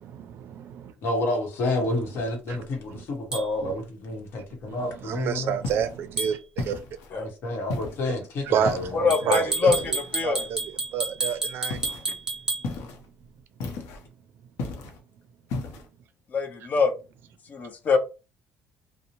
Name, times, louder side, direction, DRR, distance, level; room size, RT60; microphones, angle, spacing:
voice 1, 0.0-0.9 2.5-2.6 2.9-3.0 3.6-3.8 4.4-6.8 8.4-8.9 9.2-12.2, right 8 dB, 55° right, 0.4 m, -30 dB
voice 2, 1.0-5.5 7.1-9.5, left 2 dB, 55° left, 1.0 m, -30 dB
sound 1, 3.3-3.5 6.2-6.4 9.1-12.7, right 3 dB, 15° right, 0.7 m, -30 dB
sound 2, 5.6-6.0 6.6-7.1 7.7-8.1 8.7-9.1 9.7-10.2 11.7-12.1 12.6-13.1 13.6-14.1 14.6-15.0 15.5-15.9, left 3 dB, 85° left, 0.7 m, -34 dB
voice 3, 8.9-10.5 16.3-16.9 17.5-18.0, left 5 dB, 35° left, 0.5 m, -24 dB
2.6 x 2.0 x 2.9 m
cardioid pair, 145°, 5 cm